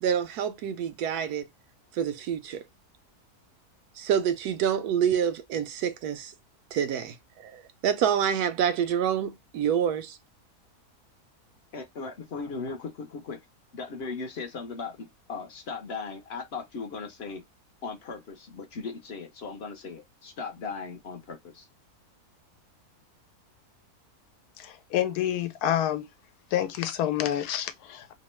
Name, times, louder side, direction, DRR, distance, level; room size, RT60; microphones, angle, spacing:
voice 1, 0.0-1.5 1.9-2.6 4.0-6.3 6.7-7.2 7.4-10.2, right 8 dB, 85° right, 1.1 m, -27 dB
voice 2, 11.7-13.4 13.7-17.4 17.8-21.7, left 4 dB, 55° left, 0.8 m, -38 dB
voice 3, 24.6-26.0 26.5-28.1, left 11 dB, 85° left, 1.1 m, -28 dB
2.9 x 2.1 x 3.0 m
omnidirectional pair, 1.6 m